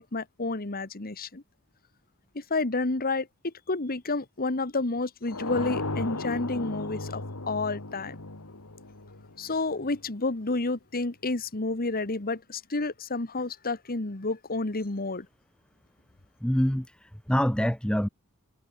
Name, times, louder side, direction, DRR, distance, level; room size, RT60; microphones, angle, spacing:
voice 1, 0.0-1.4 2.3-8.2 9.4-15.3, left 3 dB, 40° left, 1.5 m, -30 dB
sound 1, 5.3-10.0, left 2 dB, 70° left, 2.4 m, -35 dB
voice 2, 16.4-18.1, equal, 5° left, 0.8 m, -26 dB
head